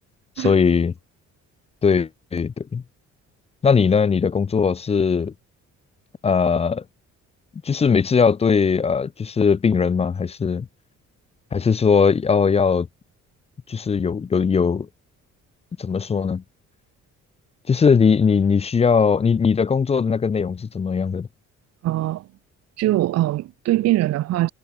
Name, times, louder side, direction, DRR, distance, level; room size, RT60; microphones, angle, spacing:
voice 1, 0.4-0.9 1.8-2.8 3.6-5.3 6.2-6.8 7.6-10.7 11.5-12.9 13.7-14.9 15.8-16.4 17.7-21.3, left 5 dB, 20° left, 0.4 m, -19 dB
voice 2, 21.8-22.3 22.8-24.5, right 15 dB, 60° right, 0.4 m, -22 dB
cardioid pair, 90°, 30 cm